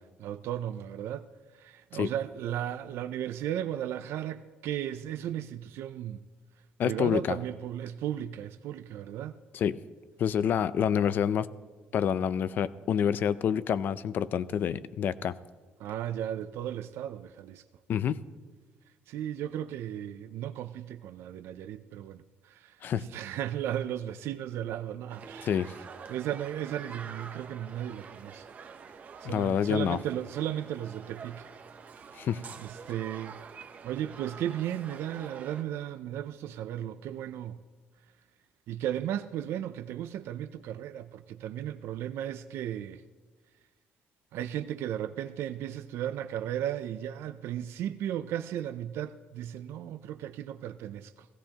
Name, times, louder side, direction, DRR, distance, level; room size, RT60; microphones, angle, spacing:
voice 1, 0.2-1.3 1.5-6.2 6.8-9.3 15.8-17.6 19.1-25.6 26.1-28.5 29.2-31.5 32.6-33.4 33.8-37.6 38.7-43.0 44.3-51.3, right 11 dB, 75° right, 0.4 m, -35 dB
voice 2, 6.8-7.4 9.5-9.8 10.2-11.5 11.9-15.4 17.9-18.2 22.8-23.0 25.4-25.7 29.2-30.0 32.2-32.4, left 8 dB, 50° left, 0.4 m, -27 dB
sound 1, 25.1-35.6, right 6 dB, 40° right, 0.9 m, -47 dB
17.0 x 16.0 x 2.9 m
cardioid pair, 155°, 4 cm